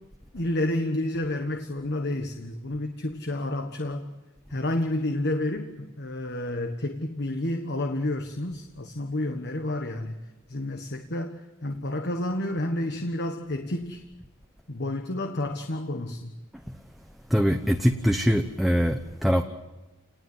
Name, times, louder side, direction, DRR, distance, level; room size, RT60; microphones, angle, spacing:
voice 1, 0.3-4.1 4.5-14.0 14.7-16.3, left 1 dB, 55° left, 6 dB, 1.4 m, -30 dB
voice 2, 17.3-19.4, equal, ahead, 4 dB, 1.0 m, -23 dB
29.0 x 19.5 x 8.0 m, 1.1 s
head